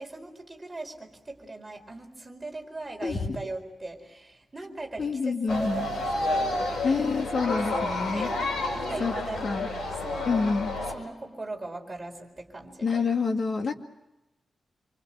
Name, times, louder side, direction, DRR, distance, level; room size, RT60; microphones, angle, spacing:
voice 1, 0.0-6.9 7.7-9.7 10.0-10.4 10.9-13.0, right 2 dB, 10° right, 1 dB, 4.5 m, -40 dB
voice 2, 3.0-3.4 5.0-5.9 6.8-8.3 9.0-9.1 9.4-9.7 10.3-10.7 12.8-13.7, left 4 dB, 45° left, 3 dB, 2.3 m, -27 dB
sound 1, 5.5-10.9, left 2 dB, 85° left, 7.6 m, -30 dB
27.0 x 25.0 x 7.6 m, 0.95 s
wide cardioid pair, 160°, 0 cm